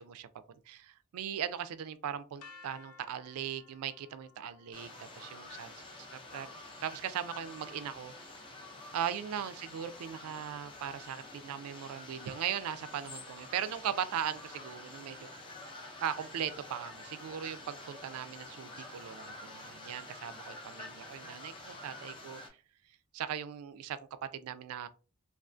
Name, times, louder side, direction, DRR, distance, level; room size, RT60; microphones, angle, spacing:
voice 1, 0.0-6.5 6.8-8.1 8.9-15.3 16.0-22.4 23.1-24.9, right 9 dB, 80° right, 0.3 m, -39 dB
sound 1, 2.4-8.3, left 4 dB, 85° left, 0.4 m, -59 dB
sound 2, 4.7-22.5, left 2 dB, 25° left, 0.5 m, -48 dB
2.3 x 2.3 x 2.5 m
head